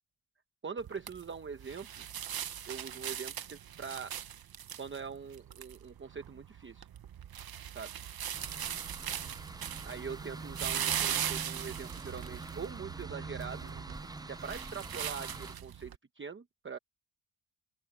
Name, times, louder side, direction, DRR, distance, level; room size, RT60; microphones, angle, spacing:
voice 1, 0.6-2.1 2.7-4.1 4.8-6.9 7.7-7.9 9.8-13.7 14.3-16.8, right 5 dB, 25° right, 0.9 m, -43 dB
sound 1, 0.8-16.0, right 9 dB, 50° right, 0.9 m, -40 dB
sound 2, 8.3-15.6, right 2 dB, 10° right, 0.4 m, -45 dB
open air
wide cardioid pair, 140°, 46 cm